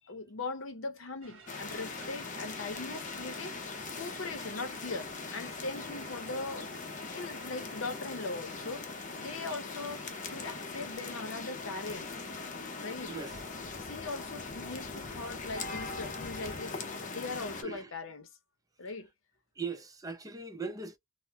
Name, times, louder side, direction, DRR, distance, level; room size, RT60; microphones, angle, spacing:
voice 1, 0.0-3.6 4.0-6.7 7.1-8.9 9.2-12.1 12.8-13.2 13.8-16.8 17.1-18.3 18.8-19.1, left 3 dB, 80° left, 0.7 m, -40 dB
sound 1, 1.2-11.0, right 4 dB, 70° right, 0.7 m, -55 dB
sound 2, 1.5-17.6, left 4 dB, 40° left, 0.6 m, -41 dB
voice 2, 13.1-13.4 17.6-17.9 19.6-21.0, right 4 dB, 20° right, 0.5 m, -40 dB
4.1 x 2.1 x 2.2 m
head